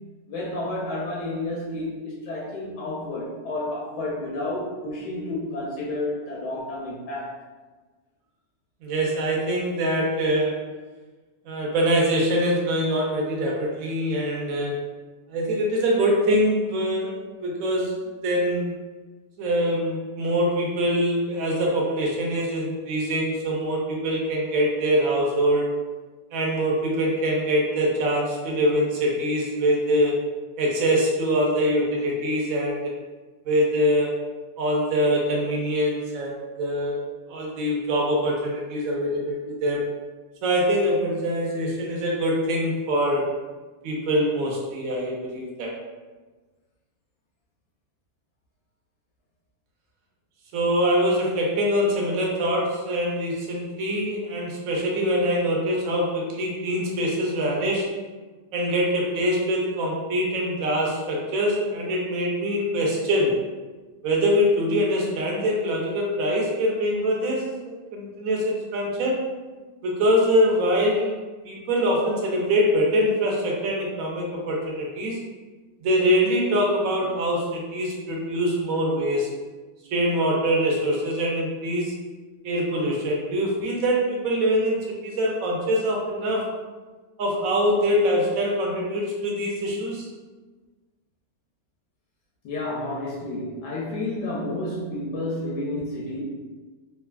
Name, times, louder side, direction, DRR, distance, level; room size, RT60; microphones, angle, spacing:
voice 1, 0.3-7.4 92.4-96.2, left 2 dB, 80° left, -4 dB, 1.1 m, -30 dB
voice 2, 8.8-10.6 11.5-14.8 15.3-18.7 19.4-25.7 26.3-30.2 30.6-32.9 33.4-34.2 34.6-37.0 37.3-39.9 40.4-43.3 43.8-45.8 50.5-57.9 58.5-63.4 64.0-69.2 69.8-75.2 75.8-79.3 79.9-81.9 82.4-86.5 87.2-90.1, equal, 70° right, -2 dB, 0.9 m, -24 dB
3.2 x 2.2 x 2.3 m, 1.3 s
omnidirectional pair, 1.9 m